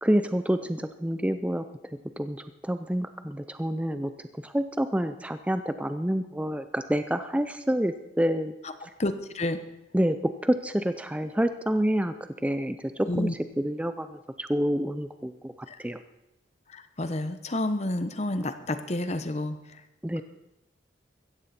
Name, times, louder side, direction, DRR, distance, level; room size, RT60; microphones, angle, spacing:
voice 1, 0.0-1.6 2.2-4.1 4.4-8.5 9.9-12.1 12.4-15.5 15.8-16.0 20.0-20.2, equal, 5° right, 10 dB, 0.4 m, -28 dB
voice 2, 8.6-9.6 13.1-13.3 15.7-15.8 16.7-19.6, left 1 dB, 35° left, 10 dB, 0.9 m, -30 dB
16.0 x 14.0 x 4.3 m, 0.90 s
head